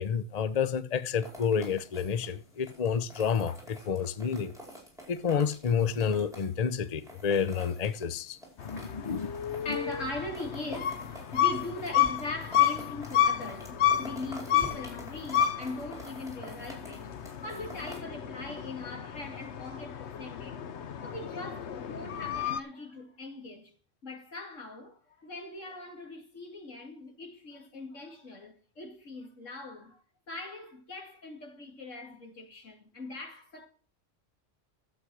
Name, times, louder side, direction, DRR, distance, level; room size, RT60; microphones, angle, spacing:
voice 1, 0.0-4.5 5.1-8.4 8.6-9.3, left 6 dB, 40° left, 0.7 m, -29 dB
sound 1, 1.2-18.0, equal, ahead, 5.0 m, -49 dB
sound 2, 8.6-22.6, left 10 dB, 70° left, 1.1 m, -31 dB
voice 2, 9.6-20.7 21.0-23.7 24.0-33.7, left 2 dB, 85° left, 2.7 m, -41 dB
11.5 x 8.0 x 6.3 m
omnidirectional pair, 1.3 m